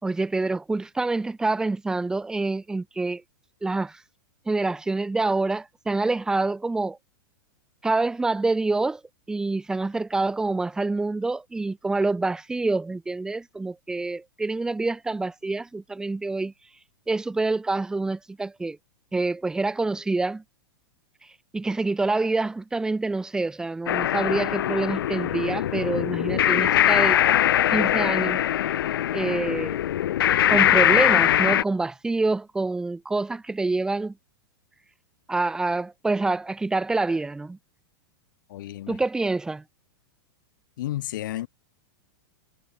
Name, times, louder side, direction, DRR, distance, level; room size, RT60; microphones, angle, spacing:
voice 1, 0.0-3.2 3.6-4.0 4.5-7.0 7.8-9.0 9.3-16.5 17.1-18.8 19.1-20.4 21.5-27.2 27.7-28.4 29.1-29.8 30.5-34.1 35.3-37.6 38.9-39.6, right 3 dB, 5° right, 5.6 m, -26 dB
sound 1, 23.9-31.6, left 11 dB, 75° left, 2.9 m, -22 dB
voice 2, 38.5-39.0 40.8-41.5, left 14 dB, 60° left, 6.1 m, -32 dB
supercardioid pair, 170°, 12 cm